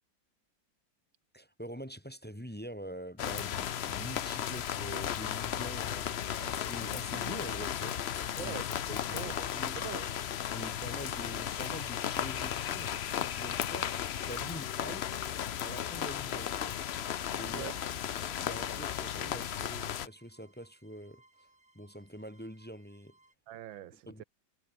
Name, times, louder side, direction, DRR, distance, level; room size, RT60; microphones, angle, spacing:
voice 1, 1.3-8.1 8.4-8.5 8.9-9.8 10.5-14.0 14.3-15.2 15.6-16.8 17.3-17.7 18.1-21.5 21.7-23.2 24.1-24.2, equal, 5° left, 1.9 m, -45 dB
sound 1, 3.2-20.1, left 10 dB, 80° left, 0.5 m, -35 dB
voice 2, 8.4-9.5 9.8-10.1 17.5-17.8 23.5-24.2, right 12 dB, 90° right, 1.7 m, -44 dB
sound 2, 14.8-18.8 19.6-23.3, right 2 dB, 45° right, 6.0 m, -67 dB
omnidirectional pair, 2.1 m